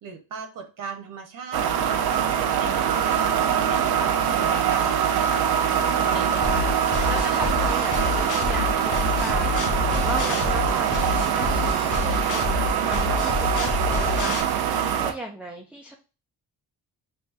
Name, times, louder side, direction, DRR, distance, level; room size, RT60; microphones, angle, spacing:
voice 1, 0.0-2.1 2.4-5.5, right 5 dB, 65° right, 5 dB, 1.1 m, -38 dB
sound 1, 1.5-15.1, right 8 dB, 90° right, 0.6 m, -23 dB
voice 2, 5.7-15.9, right 1 dB, 5° right, 1 dB, 0.3 m, -37 dB
sound 2, 6.4-14.4, left 5 dB, 55° left, 0.7 m, -28 dB
5.3 x 2.2 x 2.7 m, 0.32 s
wide cardioid pair, 170°, 36 cm